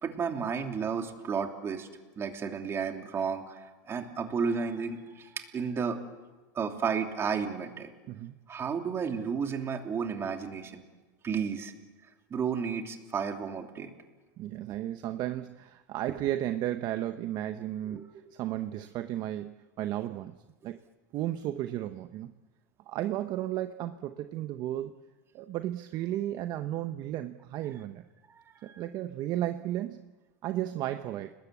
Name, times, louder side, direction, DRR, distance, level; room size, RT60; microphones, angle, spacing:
voice 1, 0.0-1.9 2.2-6.0 6.5-7.9 8.5-10.8 11.2-11.7 12.3-13.9 17.9-18.1 28.3-28.8, right 6 dB, 25° right, 4 dB, 3.1 m, -32 dB
voice 2, 14.4-20.4 20.6-20.8 21.1-22.3 22.9-24.9 25.3-28.0 28.6-30.1 30.4-31.3, right 13 dB, 45° right, 9 dB, 1.0 m, -34 dB
29.5 x 20.5 x 8.4 m, 1.2 s
supercardioid pair, 125°, 10 cm